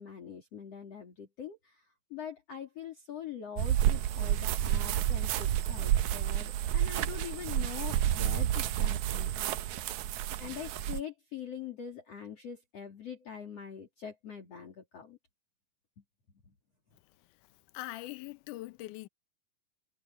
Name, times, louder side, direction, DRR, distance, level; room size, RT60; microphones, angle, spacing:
voice 1, 0.0-1.9 2.1-9.6 10.4-15.2, left 8 dB, 45° left, 3.7 m, -43 dB
sound 1, 3.6-11.0, right 12 dB, 75° right, 1.7 m, -30 dB
voice 2, 17.7-19.1, left 18 dB, 75° left, 2.0 m, -41 dB
omnidirectional pair, 4.3 m